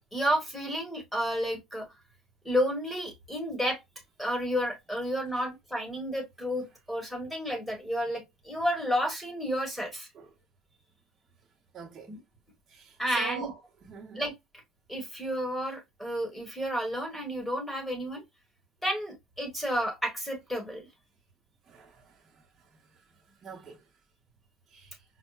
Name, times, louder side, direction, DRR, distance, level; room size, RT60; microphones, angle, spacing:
voice 1, 0.1-1.8 2.4-3.8 4.2-10.1 12.1-12.2 13.0-13.5 14.1-14.3 14.9-18.2 18.8-20.8, equal, 5° left, 1.3 m, -31 dB
voice 2, 11.7-12.1 12.7-14.2 21.7-23.0 23.4-23.9 24.7-25.0, right 6 dB, 30° right, 0.8 m, -45 dB
5.3 x 2.1 x 2.3 m
cardioid pair, 150°, 0 cm